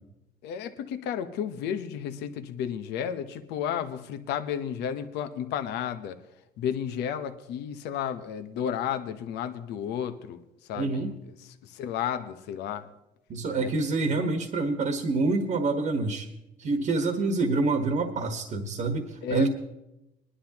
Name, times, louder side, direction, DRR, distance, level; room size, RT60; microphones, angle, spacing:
voice 1, 0.4-6.2 6.6-10.4 10.7-11.1 11.4-12.9 13.5-13.7 19.2-19.5, left 9 dB, 85° left, 9 dB, 1.0 m, -32 dB
voice 2, 10.8-11.1 13.3-16.3 16.6-19.5, right 3 dB, 50° right, 5 dB, 1.4 m, -27 dB
20.5 x 11.5 x 3.0 m, 0.90 s
cardioid pair, 110°, 17 cm